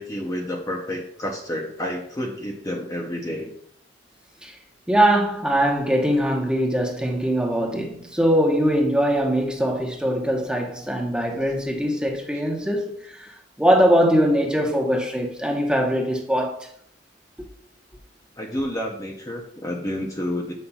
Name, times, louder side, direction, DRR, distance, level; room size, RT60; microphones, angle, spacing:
voice 1, 0.0-3.5 12.3-12.4 18.4-20.5, left 1 dB, 20° left, 0.7 m, -30 dB
voice 2, 4.9-16.7, equal, 5° right, 1.0 m, -22 dB
8.3 x 5.5 x 2.3 m
head